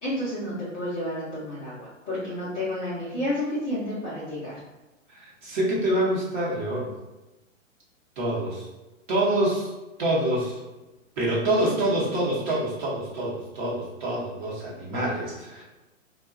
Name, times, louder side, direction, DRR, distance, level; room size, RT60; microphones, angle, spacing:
voice 1, 0.0-4.5, left 1 dB, 10° left, -13 dB, 0.5 m, -30 dB
voice 2, 5.1-6.9 8.2-8.7 9.1-9.7 10.0-10.6 11.2-15.6, right 1 dB, 40° right, -5 dB, 0.9 m, -26 dB
2.2 x 2.2 x 3.6 m, 1.1 s
hypercardioid pair, 150°, 39 cm